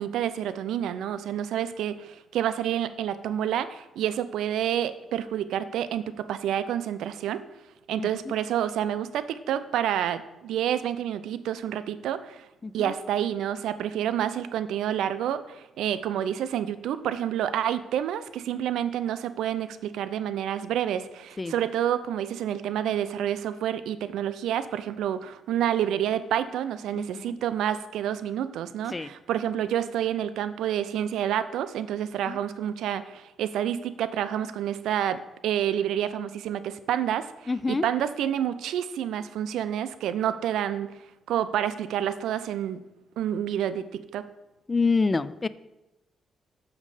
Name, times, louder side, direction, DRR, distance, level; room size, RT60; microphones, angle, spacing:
voice 1, 0.0-7.4 7.9-12.5 12.7-40.9 41.3-42.8 43.2-44.2, right 10 dB, 85° right, 13 dB, 0.5 m, -28 dB
voice 2, 8.0-8.3 12.6-12.9 21.4-21.5 26.9-27.4 28.9-29.1 32.3-32.4 37.5-37.9 44.7-45.5, left 4 dB, 25° left, 16 dB, 0.3 m, -27 dB
7.3 x 6.6 x 4.9 m, 0.97 s
cardioid pair, 95°, 0 cm